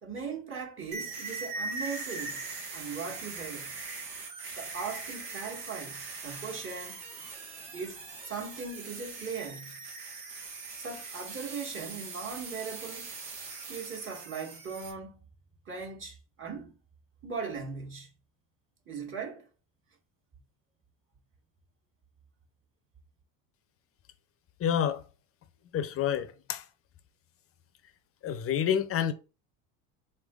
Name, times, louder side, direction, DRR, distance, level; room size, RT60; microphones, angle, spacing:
voice 1, 0.0-2.4 2.7-3.7 4.5-7.1 7.7-9.8 10.8-13.1 13.7-15.2 15.6-16.7 17.2-18.1 18.8-19.4, right 5 dB, 30° right, 1.7 m, -39 dB
sound 1, 0.9-14.9, right 4 dB, 75° right, 1.6 m, -41 dB
voice 2, 24.6-25.0 25.7-26.6 28.2-29.1, left 9 dB, 35° left, 0.7 m, -28 dB
3.9 x 3.5 x 3.8 m
supercardioid pair, 100°, 39 cm